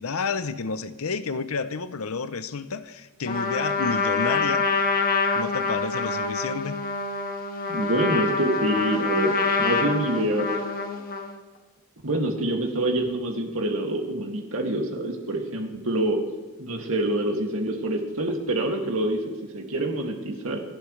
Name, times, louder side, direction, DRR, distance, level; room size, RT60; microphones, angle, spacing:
voice 1, 0.0-4.7 5.4-6.8, left 4 dB, 75° left, 0.7 m, -30 dB
Trumpet, 3.2-11.4, left 4 dB, 40° left, 1.4 m, -26 dB
voice 2, 7.7-10.5 12.0-16.2 16.6-20.6, right 1 dB, 65° right, 2.3 m, -26 dB
27.5 x 12.0 x 3.3 m
head